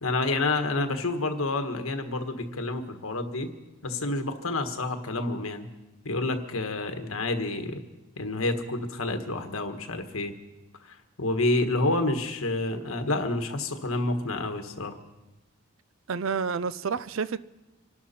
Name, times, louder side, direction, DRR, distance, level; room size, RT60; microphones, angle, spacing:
voice 1, 0.0-3.5 3.8-5.7 6.0-7.8 8.2-10.3 10.8-15.0, left 2 dB, 75° left, 1.5 m, -29 dB
voice 2, 16.1-17.4, right 5 dB, 65° right, 0.5 m, -30 dB
26.0 x 12.0 x 4.3 m
head